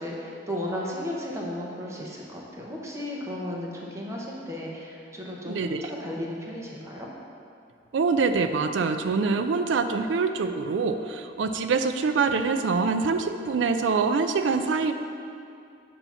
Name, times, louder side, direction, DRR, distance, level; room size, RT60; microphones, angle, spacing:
voice 1, 0.0-7.1, left 1 dB, 15° right, -3 dB, 0.9 m, -34 dB
voice 2, 5.4-5.8 7.9-14.9, right 4 dB, 90° right, 8 dB, 0.4 m, -25 dB
8.1 x 2.8 x 5.7 m, 2.5 s
head